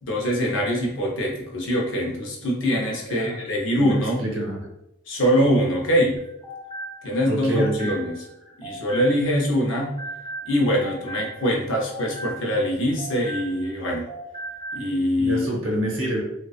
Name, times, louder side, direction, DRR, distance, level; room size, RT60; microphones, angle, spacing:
voice 1, 0.0-4.2 5.1-6.2 7.0-8.2 8.6-10.0 10.5-14.0 14.7-15.5, equal, 65° left, -1 dB, 0.6 m, -23 dB
voice 2, 3.1-3.4 3.7-4.6 7.3-8.0 15.2-16.2, right 1 dB, 75° right, -1 dB, 0.7 m, -27 dB
sound 1, 6.2-9.4 9.7-13.8 14.1-14.9, right 1 dB, 35° left, 0.8 m, -37 dB
2.5 x 2.3 x 2.3 m, 0.86 s
head